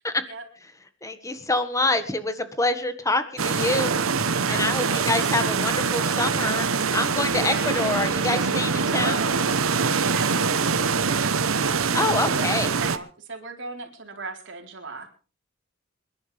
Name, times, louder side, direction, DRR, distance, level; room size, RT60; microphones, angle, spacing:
voice 1, 1.0-6.7 6.9-9.2 11.9-12.7, left 2 dB, 15° left, 9 dB, 1.7 m, -26 dB
sound 1, 3.4-13.0, right 5 dB, 85° right, 1.1 m, -24 dB
voice 2, 4.4-5.4 7.5-8.2 8.9-9.5 9.9-11.7 12.2-15.1, right 3 dB, 60° right, 2 dB, 4.1 m, -37 dB
Meow, 7.2-8.1, right 2 dB, 10° right, 2.9 m, -38 dB
27.5 x 11.5 x 3.5 m, 0.36 s
head